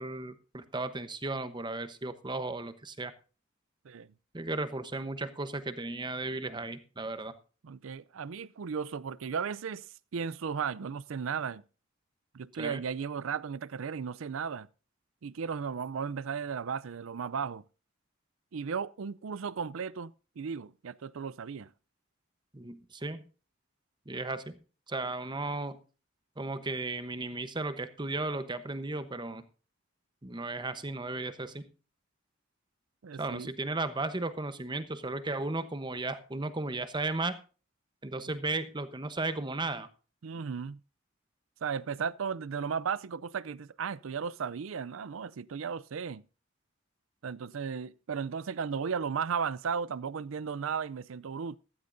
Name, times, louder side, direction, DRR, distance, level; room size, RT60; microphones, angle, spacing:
voice 1, 0.0-3.1 4.3-7.3 12.6-12.8 22.5-23.2 24.1-24.6 24.9-25.8 26.4-29.4 30.2-31.6 33.2-37.3 38.0-39.9, right 2 dB, 20° right, 0.9 m, -35 dB
voice 2, 7.6-11.6 12.3-14.7 15.2-17.6 18.5-21.7 33.0-33.5 38.3-38.4 40.2-40.8 41.6-46.2 47.2-51.6, right 6 dB, 75° right, 0.5 m, -35 dB
15.0 x 13.0 x 2.6 m
head